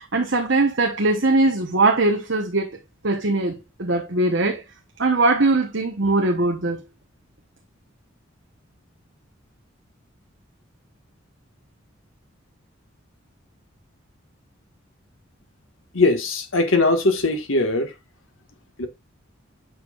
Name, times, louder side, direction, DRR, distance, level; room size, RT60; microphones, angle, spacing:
voice 1, 0.0-2.7 3.0-4.6 5.0-6.8, right 2 dB, 65° right, 1.1 m, -21 dB
voice 2, 15.9-17.9 18.8-18.9, left 2 dB, 80° left, 1.7 m, -20 dB
8.1 x 6.3 x 2.5 m
head